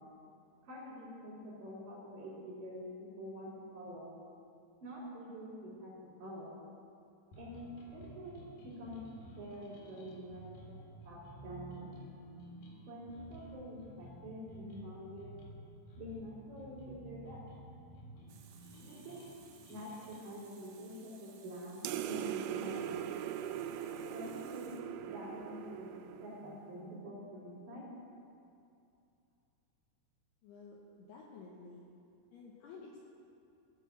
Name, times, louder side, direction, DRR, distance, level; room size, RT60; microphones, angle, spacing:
voice 1, 0.6-4.1 4.8-6.6 7.4-9.0 9.3-12.0 12.8-15.3 16.0-17.4 18.8-19.2 19.7-21.8 22.1-23.0 24.1-24.7 25.1-27.8, equal, 40° right, -13 dB, 5.0 m, -47 dB
sound 1, 7.3-20.3, right 1 dB, 55° left, 3.2 m, -53 dB
Water tap faucet, 18.3-25.3, right 7 dB, 70° right, 2.8 m, -61 dB
sound 2, 21.8-26.7, right 10 dB, 90° right, 3.2 m, -40 dB
voice 2, 30.4-31.9 32.3-33.0, left 4 dB, 75° left, -3 dB, 2.6 m, -52 dB
16.0 x 6.2 x 8.2 m, 2.6 s
omnidirectional pair, 5.7 m